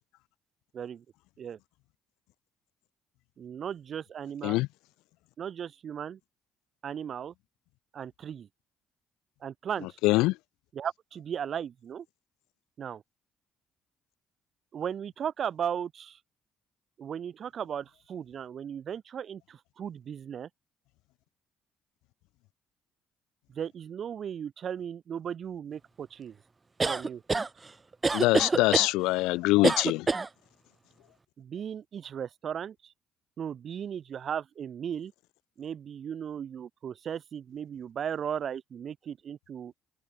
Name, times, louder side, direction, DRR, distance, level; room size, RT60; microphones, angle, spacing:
voice 1, 0.7-1.0 1.4-1.6 3.4-4.6 5.4-6.2 6.8-7.3 7.9-8.5 9.4-10.0 10.7-12.1 12.8-13.0 14.7-16.2 17.0-20.5 23.5-26.4 26.8-27.2 31.4-32.9 33.4-35.1 35.6-39.7, right 8 dB, 55° right, 3.1 m, -36 dB
voice 2, 10.0-10.4 28.1-30.1, left 21 dB, 80° left, 0.6 m, -24 dB
sound 1, 26.8-27.5 28.0-28.9 29.6-30.3, right 3 dB, 30° right, 1.1 m, -26 dB
open air
hypercardioid pair, 55°, 0 cm